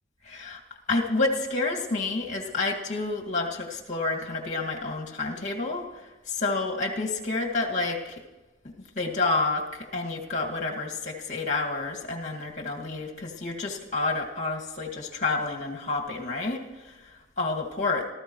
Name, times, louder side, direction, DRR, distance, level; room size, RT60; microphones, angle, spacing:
voice 1, 0.2-0.6 0.9-8.2 8.6-18.1, left 3 dB, 40° left, 0 dB, 2.2 m, -29 dB
27.0 x 14.0 x 3.2 m, 1.2 s
head